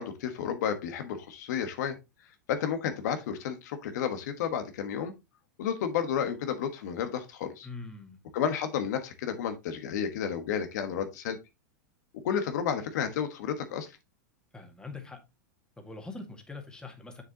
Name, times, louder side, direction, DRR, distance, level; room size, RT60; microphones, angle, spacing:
voice 1, 0.0-2.0 2.5-5.1 5.6-7.7 8.3-11.4 12.2-13.9, left 8 dB, 65° left, 1.3 m, -31 dB
voice 2, 7.6-8.2 14.5-15.2 15.8-17.2, left 3 dB, 10° left, 1.9 m, -43 dB
7.1 x 6.7 x 2.8 m
hypercardioid pair, 115°, 10 cm